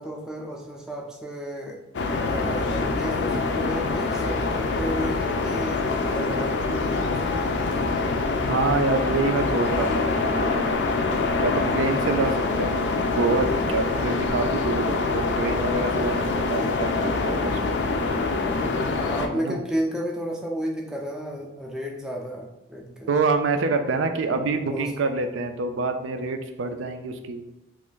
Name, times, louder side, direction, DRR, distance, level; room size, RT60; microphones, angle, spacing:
voice 1, 0.0-1.8 2.2-7.5 18.8-23.1 24.7-24.9, equal, 5° right, -1 dB, 0.4 m, -32 dB
sound 1, 1.9-19.3, left 3 dB, 65° left, 0.4 m, -25 dB
voice 2, 8.4-10.8 11.4-17.8 19.3-19.6 23.1-27.4, right 3 dB, 90° right, 7 dB, 0.4 m, -26 dB
3.1 x 2.4 x 3.8 m, 0.94 s
head